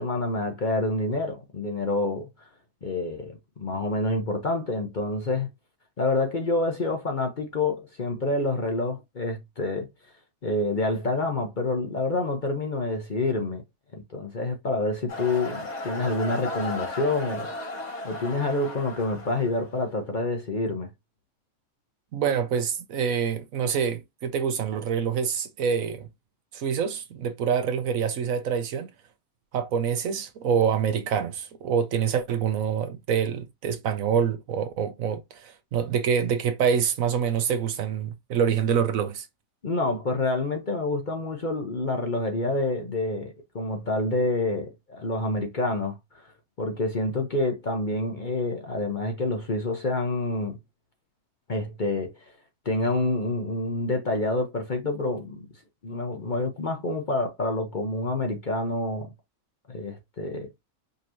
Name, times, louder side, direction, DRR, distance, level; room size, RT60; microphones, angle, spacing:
voice 1, 0.0-2.3 2.8-5.5 6.0-9.9 10.4-13.6 13.9-17.5 18.0-20.9 39.6-46.3 46.6-50.6 51.5-52.1 52.6-55.5 55.8-59.1 59.7-60.5, left 2 dB, 40° left, 0.8 m, -27 dB
sound 1, 15.1-19.9, left 2 dB, 75° left, 2.8 m, -35 dB
voice 2, 22.1-26.1 26.5-28.9 29.5-39.3, right 7 dB, 70° right, 1.1 m, -26 dB
5.3 x 3.0 x 2.6 m
omnidirectional pair, 1.5 m